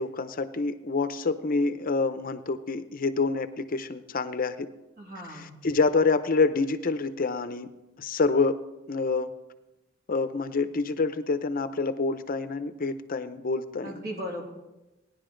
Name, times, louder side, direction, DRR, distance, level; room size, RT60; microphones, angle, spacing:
voice 1, 0.0-4.7 5.3-7.7 8.0-8.6 8.9-9.3 10.1-14.0, left 4 dB, 45° left, 11 dB, 0.6 m, -27 dB
voice 2, 5.0-5.5 13.8-14.4, equal, 50° right, -1 dB, 2.9 m, -37 dB
18.0 x 10.5 x 3.8 m, 1.0 s
head